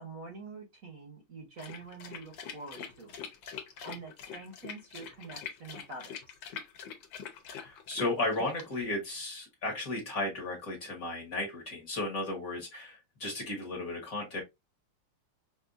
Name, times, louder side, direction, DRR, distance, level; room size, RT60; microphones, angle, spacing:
voice 1, 0.0-3.2 3.8-6.2, right 3 dB, 50° right, 1.1 m, -46 dB
sound 1, 1.6-8.9, left 7 dB, 65° left, 1.6 m, -44 dB
voice 2, 7.5-14.4, left 2 dB, 45° left, 1.6 m, -34 dB
5.3 x 2.6 x 2.5 m
omnidirectional pair, 2.4 m